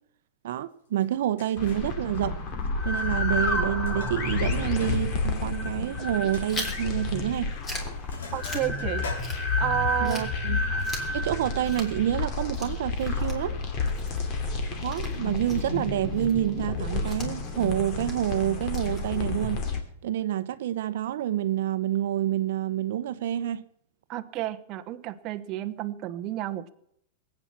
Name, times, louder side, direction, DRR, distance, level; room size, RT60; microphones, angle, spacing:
voice 1, 0.4-2.4 2.8-7.5 10.0-10.8 11.1-13.6 14.7-19.6 20.0-23.6, right 12 dB, 65° right, 0.8 m, -28 dB
Sink (filling or washing), 1.0-1.1 1.4-1.9 2.9-3.3 3.5-5.0 5.3-5.4 5.8-5.9 6.3-6.5 7.3-7.5 7.8-10.0, left 3 dB, 90° left, 4.6 m, -43 dB
sound 1, 1.6-19.8, left 3 dB, 35° left, 2.6 m, -30 dB
Chewing mastication, 6.5-9.7 10.0-19.5, left 1 dB, 15° left, 3.3 m, -42 dB
voice 2, 8.3-9.1 9.6-10.3 24.1-26.7, right 14 dB, 30° right, 1.0 m, -31 dB
20.0 x 8.8 x 7.4 m
supercardioid pair, 160°, 0 cm